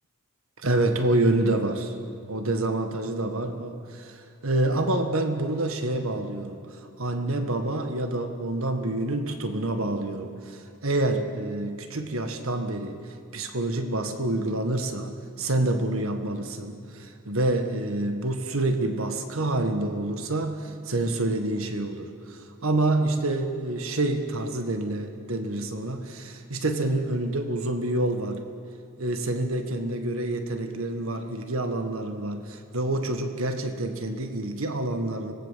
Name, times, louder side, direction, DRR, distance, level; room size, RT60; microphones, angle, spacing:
voice 1, 0.6-2.0 2.3-28.4 29.0-35.3, right 2 dB, 70° right, 7 dB, 1.7 m, -27 dB
25.0 x 19.5 x 7.6 m, 2.7 s
head